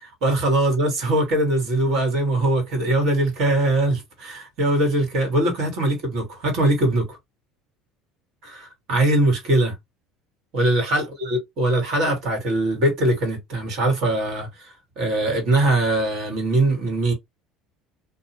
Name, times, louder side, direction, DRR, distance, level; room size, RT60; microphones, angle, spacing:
voice 1, 0.2-7.2 8.4-9.7 10.5-17.1, right 2 dB, 65° right, 1.5 m, -21 dB
2.6 x 2.2 x 2.7 m
supercardioid pair, 90°, 0 cm